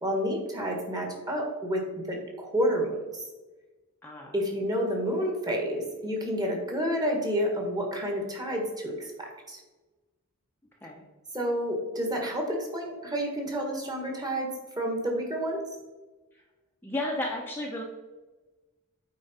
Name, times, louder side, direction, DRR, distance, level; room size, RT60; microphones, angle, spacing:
voice 1, 0.0-3.2 4.3-9.6 11.3-14.5 14.8-15.6, equal, 20° right, 1 dB, 1.5 m, -29 dB
voice 2, 4.0-4.3 10.8-11.0 16.3-16.4 16.8-17.8, left 1 dB, 10° left, -2 dB, 0.8 m, -33 dB
8.5 x 4.6 x 4.2 m, 1.2 s
head